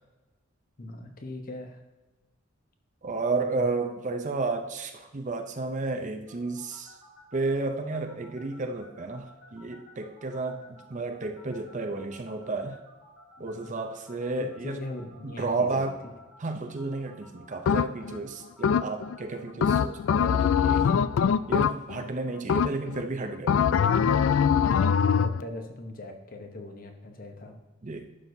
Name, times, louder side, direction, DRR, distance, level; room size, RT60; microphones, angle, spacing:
voice 1, 0.8-1.8 3.4-3.8 13.4-13.8 14.4-16.0 19.5-19.7 24.6-27.6, left 1 dB, 45° left, 4 dB, 1.0 m, -40 dB
voice 2, 3.0-6.9 7.3-12.8 13.4-14.8 15.2-15.9 16.4-20.9 21.5-23.6 27.8-28.1, right 3 dB, 35° right, 6 dB, 0.6 m, -32 dB
sound 1, 6.3-20.4, left 1 dB, 85° left, 2.3 m, -53 dB
sound 2, 17.7-18.2 18.6-19.2 19.6-22.1 22.5-23.0 23.5-25.4, left 7 dB, 70° left, 0.3 m, -23 dB
11.5 x 6.1 x 2.7 m, 1.1 s
head